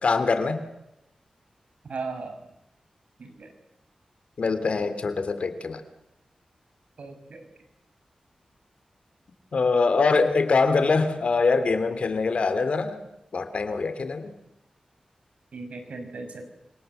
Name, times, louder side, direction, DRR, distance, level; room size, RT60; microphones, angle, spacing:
voice 1, 0.0-0.6 4.4-5.8 9.5-13.0 13.3-14.3, left 4 dB, 65° left, 11 dB, 3.0 m, -23 dB
voice 2, 1.9-2.3 3.2-3.5 7.0-7.4 15.5-16.4, right 4 dB, 75° right, 7 dB, 5.8 m, -37 dB
28.5 x 26.5 x 8.0 m, 0.88 s
wide cardioid pair, 100°, 2 cm